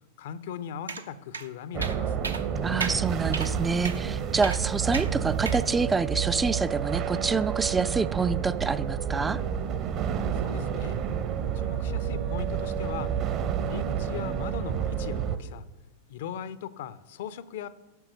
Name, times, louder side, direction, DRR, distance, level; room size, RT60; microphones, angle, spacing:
voice 1, 0.2-2.3 10.3-11.0 11.5-13.1 13.6-15.6 16.1-17.7, left 8 dB, 55° left, 16 dB, 0.5 m, -39 dB
sound 1, 0.9-1.0 1.3-1.5 1.8-2.0 2.2-2.4 2.8-3.0 3.3-3.5 3.8-4.0 4.4-4.6 4.9-5.1 5.5-5.6, right 4 dB, 75° right, 0.7 m, -33 dB
sound 2, 1.7-15.4, right 8 dB, 35° right, 0.8 m, -29 dB
voice 2, 2.6-9.4, right 4 dB, 15° right, 16 dB, 0.3 m, -27 dB
9.1 x 5.9 x 6.5 m, 1.1 s
figure-of-eight pair, 90°, 0 cm